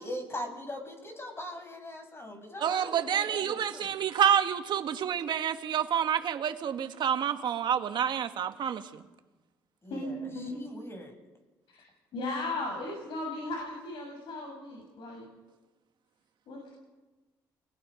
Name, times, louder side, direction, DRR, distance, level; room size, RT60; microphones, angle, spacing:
voice 1, 0.0-3.9 9.8-11.1, left 1 dB, 30° left, 7.7 m, -41 dB
voice 2, 2.6-9.0, right 9 dB, 65° right, 1.8 m, -28 dB
voice 3, 9.9-10.6 11.7-11.8 12.1-15.2 16.5-16.8, left 2 dB, 70° left, 7.7 m, -36 dB
29.0 x 21.5 x 5.3 m
supercardioid pair, 60°, 9 cm